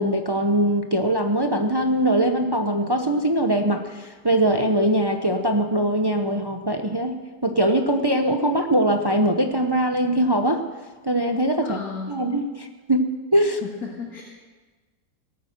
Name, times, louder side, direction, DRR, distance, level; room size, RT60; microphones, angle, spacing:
voice 1, 0.0-10.6 11.0-11.8 12.1-13.0 13.3-13.6, right 1 dB, 30° right, 5 dB, 0.4 m, -22 dB
voice 2, 11.6-12.2 13.6-14.2, left 5 dB, 65° left, -2 dB, 2.2 m, -33 dB
18.5 x 9.1 x 6.6 m, 1.3 s
omnidirectional pair, 1.8 m